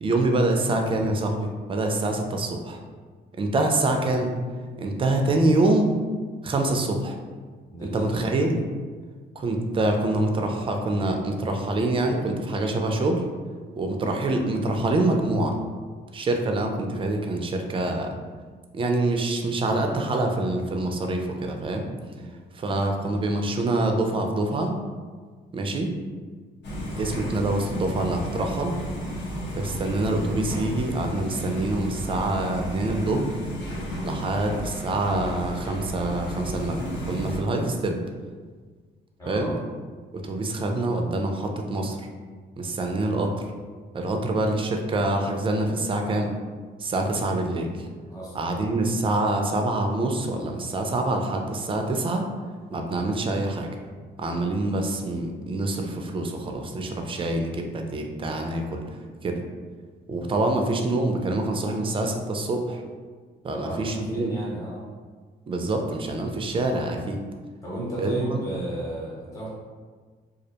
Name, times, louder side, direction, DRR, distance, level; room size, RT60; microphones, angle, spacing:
voice 1, 0.0-2.8 3.4-4.3 4.8-6.0 6.4-7.2 7.8-8.6 9.4-13.2 13.8-15.6 16.1-18.1 18.7-21.9 22.5-24.8 25.5-25.9 26.9-28.8 29.6-33.2 34.0-38.0 39.3-39.5 40.1-42.1 42.6-43.5 43.9-46.3 46.8-47.9 48.3-52.3 52.7-53.7 54.2-58.8 59.2-59.4 60.1-62.8 63.4-64.3 65.5-67.2 68.0-68.4, right 2 dB, 25° right, 3 dB, 0.3 m, -25 dB
voice 2, 7.7-8.3 22.2-22.3 39.2-39.6 48.1-48.5 63.5-64.8 67.6-69.5, right 1 dB, 15° left, -7 dB, 0.9 m, -33 dB
sound 1, 26.6-37.4, equal, 65° left, 0.7 m, -33 dB
2.4 x 2.1 x 2.8 m, 1.5 s
cardioid pair, 90°, 20 cm